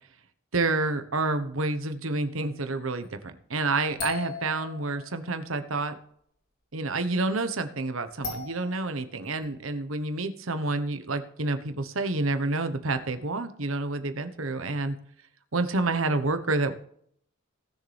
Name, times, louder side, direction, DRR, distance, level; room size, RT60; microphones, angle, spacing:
voice 1, 0.5-5.9 6.7-15.0 15.5-16.7, right 3 dB, 70° right, 9 dB, 1.2 m, -28 dB
sound 1, 4.0-5.4 8.2-8.8 9.4-9.5, left 4 dB, 50° left, 3.3 m, -37 dB
18.5 x 6.6 x 3.4 m, 0.66 s
head